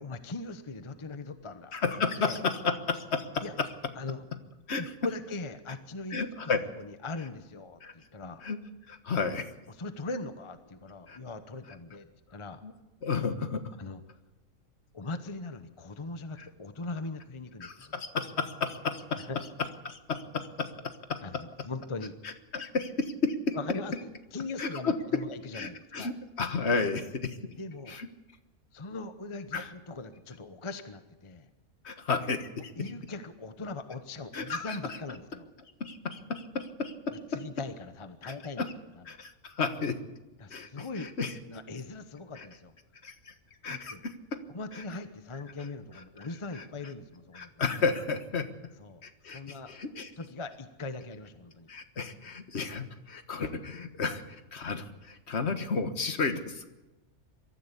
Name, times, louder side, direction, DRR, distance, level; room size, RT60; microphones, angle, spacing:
voice 1, 0.0-1.8 2.2-2.4 3.4-3.5 3.9-4.2 4.8-6.5 6.8-8.4 9.7-12.6 13.8-14.0 14.9-18.0 19.2-19.4 21.2-22.1 23.5-26.1 27.6-28.0 28.7-31.5 32.8-35.5 37.1-38.6 39.0-39.1 40.4-42.7 43.7-44.0 44.5-47.5 48.8-49.7 50.2-51.7, left 3 dB, 25° left, 9 dB, 0.9 m, -40 dB
voice 2, 1.7-3.7 4.7-4.8 6.1-6.6 7.8-7.9 8.4-8.6 8.9-9.5 11.1-11.2 12.6-12.7 13.0-13.6 17.6-19.3 19.9-21.4 22.2-23.6 24.6-24.9 25.5-27.4 27.9-28.1 29.5-29.7 31.8-32.9 34.3-35.0 35.8-37.4 38.2-38.7 39.1-40.0 40.5-41.3 42.4-42.5 43.0-43.3 43.6-44.4 46.2-46.3 46.6-46.7 47.3-48.5 49.0-50.1 51.7-56.7, left 4 dB, 50° left, 8 dB, 1.7 m, -32 dB
22.5 x 14.0 x 8.3 m, 1.1 s
omnidirectional pair, 1.5 m